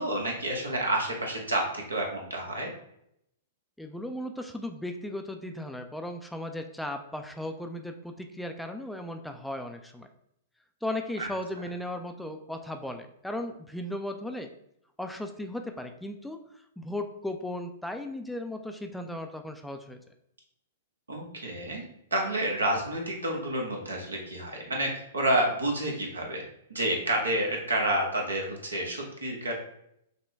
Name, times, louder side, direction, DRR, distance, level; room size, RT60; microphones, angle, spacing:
voice 1, 0.0-2.7 11.2-11.3 21.1-21.8 22.1-26.4 26.7-29.6, right 1 dB, 85° right, 0 dB, 1.1 m, -29 dB
voice 2, 3.8-10.1 10.8-14.5 15.0-16.4 16.8-20.0, left 1 dB, ahead, 5 dB, 0.4 m, -36 dB
5.6 x 2.2 x 3.3 m, 0.76 s
figure-of-eight pair, 110°, 0 cm